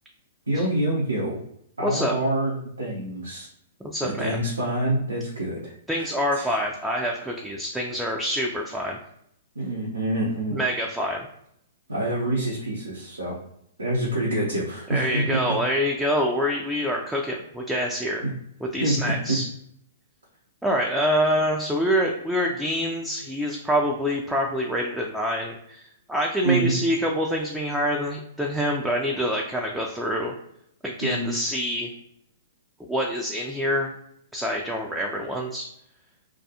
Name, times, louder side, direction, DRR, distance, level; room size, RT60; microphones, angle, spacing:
voice 1, 0.5-1.4 1.8-3.5 4.0-6.5 9.5-10.6 11.9-13.4 13.8-15.6 18.2-18.3 18.8-19.4 26.4-26.8 31.0-31.3, right 1 dB, 85° right, -5 dB, 0.7 m, -26 dB
voice 2, 1.8-2.1 3.8-4.4 5.9-9.0 10.5-11.3 14.9-18.2 18.7-19.5 20.6-30.3 30.8-31.9 32.9-33.9 34.3-35.7, equal, 5° right, -1 dB, 0.3 m, -26 dB
2.3 x 2.3 x 2.7 m, 0.75 s
figure-of-eight pair, 115°, 0 cm